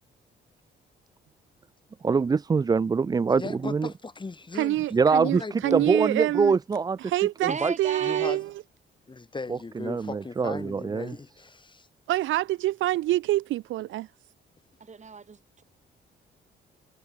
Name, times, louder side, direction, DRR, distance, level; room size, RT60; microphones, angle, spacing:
voice 1, 2.0-3.9 4.9-5.4 5.7-7.0 7.4-7.7 9.5-11.1, right 5 dB, 20° right, 0.4 m, -24 dB
voice 2, 3.4-4.8 5.2-5.9 8.0-8.4 9.1-11.9, left 3 dB, 25° left, 2.7 m, -37 dB
voice 3, 4.5-6.5 7.0-7.5 7.8-8.5 12.1-14.1, right 16 dB, 80° right, 0.6 m, -26 dB
voice 4, 7.5-8.4 14.8-15.6, right 5 dB, 35° right, 4.6 m, -35 dB
cardioid pair, 90°, 20 cm